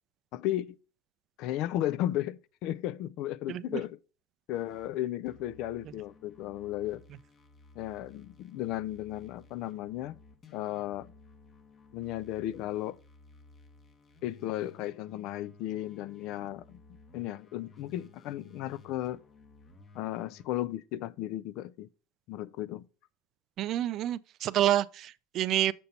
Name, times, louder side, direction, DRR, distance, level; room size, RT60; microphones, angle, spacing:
voice 1, 0.3-0.7 1.4-4.0 4.5-7.0 7.8-10.2 10.5-11.1 11.9-13.0 14.2-16.8 17.1-19.2 19.9-21.9 22.3-22.9, left 13 dB, 55° left, 0.4 m, -34 dB
voice 2, 3.5-3.8 23.6-25.7, right 12 dB, 45° right, 0.3 m, -28 dB
sound 1, 4.5-4.9 5.2-20.4, left 3 dB, 25° left, 0.9 m, -57 dB
6.9 x 4.3 x 5.2 m
supercardioid pair, 130°, 0 cm